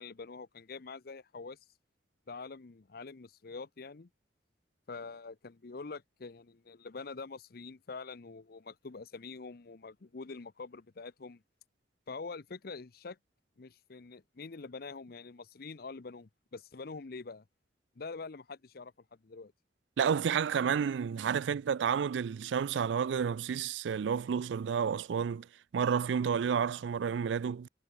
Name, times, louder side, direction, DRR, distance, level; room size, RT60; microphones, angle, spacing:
voice 1, 0.0-1.6 2.3-4.1 4.9-11.4 12.1-13.2 13.6-17.4 18.0-18.9 19.2-19.5, left 4 dB, 55° left, 0.7 m, -45 dB
voice 2, 20.0-25.5 25.7-27.7, right 7 dB, 85° right, 0.4 m, -30 dB
head